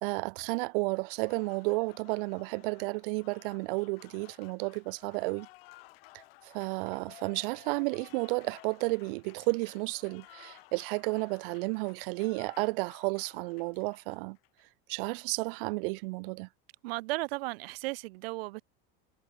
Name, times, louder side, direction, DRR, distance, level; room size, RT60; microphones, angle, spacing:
voice 1, 0.0-5.5 6.5-14.4 14.9-16.5, right 28 dB, 70° right, 0.5 m, -32 dB
Applause, 1.0-14.6, left 21 dB, 85° left, 5.1 m, -56 dB
voice 2, 16.8-18.6, right 22 dB, 85° right, 1.0 m, -35 dB
cardioid pair, 165°, 29 cm